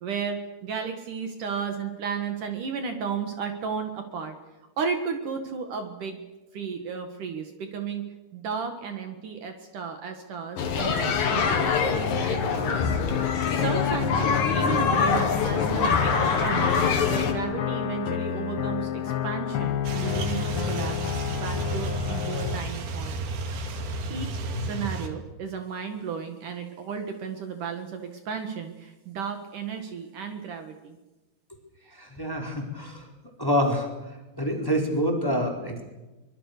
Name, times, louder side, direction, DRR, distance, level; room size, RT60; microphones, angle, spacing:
voice 1, 0.0-4.4 4.8-6.2 6.5-8.0 8.3-12.8 13.3-16.8 17.1-23.2 24.1-31.0, right 6 dB, 60° right, 6 dB, 3.2 m, -34 dB
sound 1, 10.6-22.6, left 9 dB, 80° left, 1.2 m, -30 dB
sound 2, 10.6-17.3, left 5 dB, 55° left, 3.4 m, -25 dB
sound 3, 19.8-25.1, right 2 dB, 85° right, 4.3 m, -32 dB
voice 2, 32.0-33.1 33.4-33.9 34.4-35.8, equal, 5° left, 1 dB, 4.2 m, -26 dB
24.5 x 23.5 x 6.8 m, 1.1 s
omnidirectional pair, 4.3 m